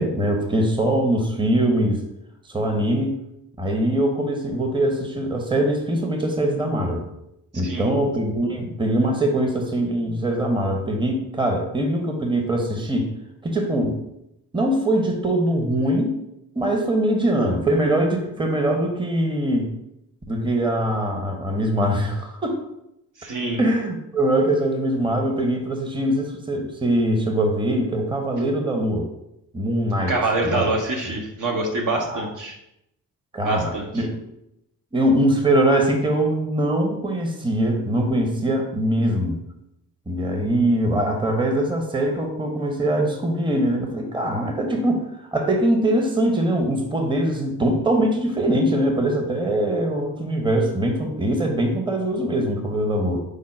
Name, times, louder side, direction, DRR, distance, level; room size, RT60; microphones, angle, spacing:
voice 1, 0.0-2.0 2.5-3.1 3.6-7.1 7.5-13.1 13.4-14.0 14.5-16.2 16.5-19.7 20.3-22.6 23.6-29.1 29.5-30.1 30.4-30.7 32.1-32.2 33.3-34.2 34.9-39.4 40.1-53.2, right 1 dB, 15° right, 3 dB, 0.8 m, -22 dB
voice 2, 23.2-23.6 30.1-32.6 33.4-34.0, right 2 dB, 55° right, 1 dB, 1.0 m, -25 dB
5.0 x 2.1 x 4.3 m, 0.83 s
supercardioid pair, 55°, 36 cm